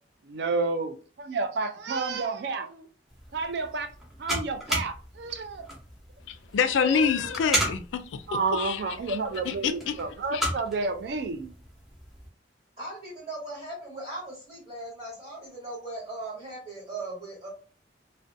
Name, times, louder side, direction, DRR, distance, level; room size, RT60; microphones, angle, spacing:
voice 1, 0.2-0.9 1.2-2.9 3.3-3.9 4.2-5.7 6.8-7.4 8.3-11.5, right 4 dB, 60° right, 0.4 m, -30 dB
sound 1, 3.1-12.3, equal, ahead, 0.6 m, -35 dB
voice 2, 6.3-9.2 9.4-10.0 10.3-10.4, left 6 dB, 75° left, 0.3 m, -27 dB
voice 3, 12.8-17.5, right 2 dB, 30° right, 0.9 m, -38 dB
2.4 x 2.1 x 2.5 m
head